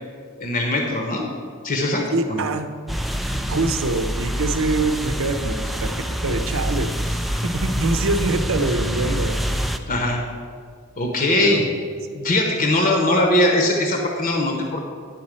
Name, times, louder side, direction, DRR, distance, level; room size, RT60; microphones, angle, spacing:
voice 1, 0.4-1.3 1.6-2.4 9.9-10.2 11.0-11.6 12.1-14.9, left 1 dB, 40° left, 1 dB, 1.0 m, -21 dB
voice 2, 2.1-2.7 3.5-5.9 6.2-9.4 11.4-11.7 12.1-12.2, right 3 dB, 65° right, 8 dB, 0.7 m, -24 dB
sound 1, 2.9-9.8, equal, ahead, 0.4 m, -26 dB
10.5 x 4.2 x 7.5 m, 2.2 s
head